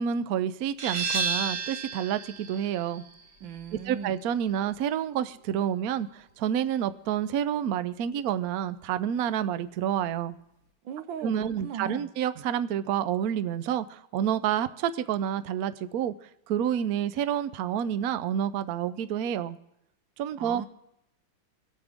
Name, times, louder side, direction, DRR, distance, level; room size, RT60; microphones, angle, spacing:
voice 1, 0.0-3.0 3.9-10.3 11.2-16.1 16.5-19.6 20.2-20.6, right 9 dB, 90° right, 13 dB, 0.8 m, -29 dB
sound 1, 0.8-6.2, right 4 dB, 40° right, 1.4 m, -34 dB
voice 2, 3.4-4.2 10.8-12.1 20.4-20.7, right 7 dB, 75° right, 10 dB, 1.4 m, -38 dB
25.5 x 8.8 x 3.5 m, 0.83 s
omnidirectional pair, 2.3 m